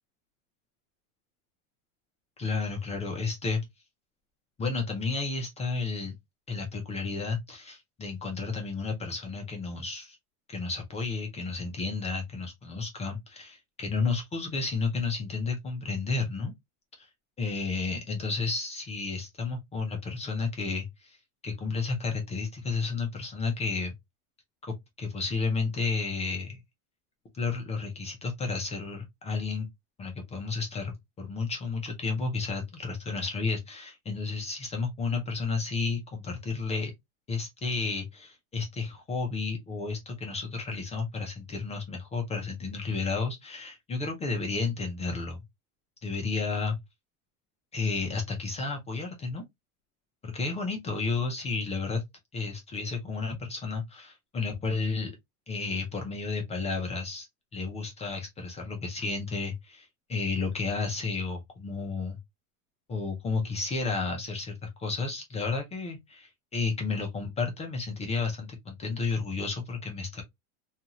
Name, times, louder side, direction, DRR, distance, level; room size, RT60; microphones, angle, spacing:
voice 1, 2.4-3.7 4.6-6.2 6.5-10.2 10.5-16.5 17.0-17.1 17.4-21.2 21.4-23.9 24.7-26.6 27.3-29.7 30.0-36.9 37.3-45.4 46.0-46.8 47.7-49.4 50.2-52.0 52.3-55.1 55.5-57.3 57.5-62.2 62.9-70.2, left 4 dB, 15° left, 0.5 m, -32 dB
2.6 x 2.4 x 2.8 m
supercardioid pair, 135°, 43 cm